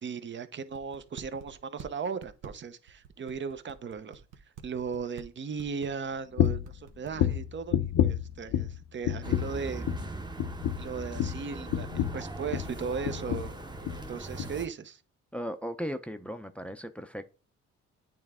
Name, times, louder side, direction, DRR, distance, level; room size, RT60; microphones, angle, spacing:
voice 1, 0.0-4.2 4.6-9.9 10.7-13.5 14.1-15.0, right 5 dB, 40° right, 0.7 m, -37 dB
sound 1, 0.7-1.9 2.2-5.2 5.6-6.1 6.4-7.1, right 8 dB, 85° right, 1.0 m, -47 dB
sound 2, 6.4-6.7 7.2-8.8 9.0-9.6 9.8-10.1 10.4-12.8 13.0-13.5 13.8-14.0 14.4-14.5, left 11 dB, 75° left, 0.7 m, -29 dB
sound 3, 9.2-14.7, right 2 dB, 15° right, 0.9 m, -40 dB
voice 2, 15.3-17.2, equal, 5° left, 0.6 m, -36 dB
8.7 x 3.3 x 3.6 m
cardioid pair, 90°, 30 cm